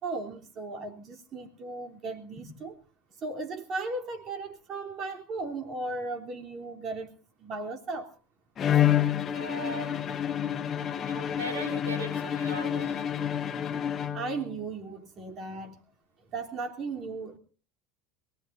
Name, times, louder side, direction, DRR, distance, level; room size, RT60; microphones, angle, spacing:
voice 1, 0.0-2.8 3.2-7.1 7.4-8.1 14.1-15.8 16.3-17.4, right 3 dB, 45° right, 3 dB, 3.3 m, -36 dB
Bowed string instrument, 8.6-14.6, left 10 dB, 35° left, 1.4 m, -28 dB
voice 2, 9.3-9.9 11.1-13.1, right 2 dB, 85° right, 5 dB, 5.4 m, -39 dB
22.5 x 18.5 x 2.6 m, 0.39 s
hypercardioid pair, 90°, 0 cm